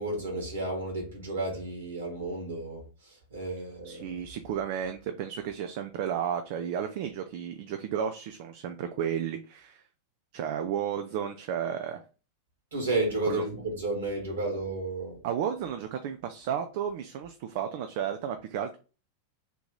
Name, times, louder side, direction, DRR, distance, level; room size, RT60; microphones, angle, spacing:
voice 1, 0.0-4.1 12.7-15.2, right 2 dB, 70° right, 2.1 m, -32 dB
voice 2, 3.8-9.8 10.3-12.0 13.3-13.4 15.2-18.8, right 8 dB, 50° right, 0.4 m, -33 dB
3.7 x 2.9 x 3.8 m
figure-of-eight pair, 90°, 0 cm